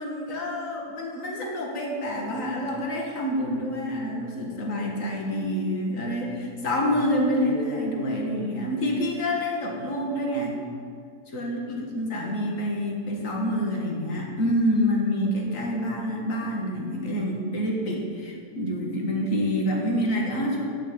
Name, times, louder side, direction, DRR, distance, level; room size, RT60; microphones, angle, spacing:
voice 1, 0.0-10.6 11.3-20.6, equal, 60° left, -1 dB, 2.1 m, -27 dB
8.2 x 7.7 x 8.6 m, 2.1 s
omnidirectional pair, 1.6 m